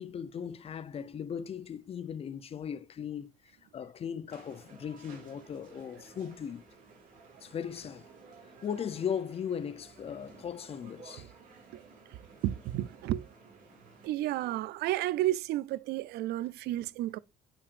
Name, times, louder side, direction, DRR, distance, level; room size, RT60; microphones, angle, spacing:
voice 1, 0.0-3.3 3.7-6.6 7.4-8.0 8.6-11.3, left 8 dB, 35° left, 0.5 m, -38 dB
sound 1, 4.3-14.1, right 4 dB, 50° right, 2.6 m, -55 dB
voice 2, 12.4-13.3 14.0-17.2, right 14 dB, 75° right, 0.4 m, -32 dB
6.9 x 5.7 x 2.4 m
cardioid pair, 110°, 17 cm